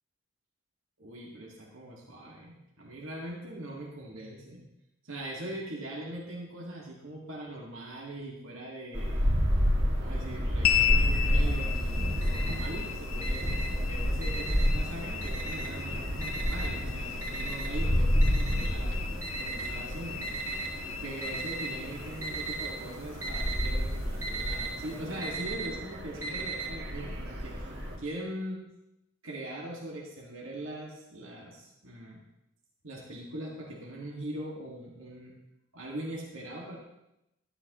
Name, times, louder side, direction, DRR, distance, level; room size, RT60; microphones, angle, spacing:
voice 1, 1.0-4.6 5.0-9.2 10.0-19.0 19.4-20.5 21.0-27.7 28.0-28.7 29.2-32.2 32.8-35.3 35.7-36.8, right 1 dB, 75° right, -3 dB, 2.0 m, -41 dB
amb Liège spring, 8.9-28.0, equal, 50° right, 2.6 m, -30 dB
sound 1, 10.6-25.3, left 10 dB, 75° left, 0.6 m, -36 dB
Alarm, 11.9-12.8 13.2-14.8 15.2-15.9 16.2-20.7 21.2-21.8 22.1-22.7 23.0-26.7, right 4 dB, 15° right, 2.2 m, -37 dB
12.5 x 11.0 x 3.1 m, 0.86 s
head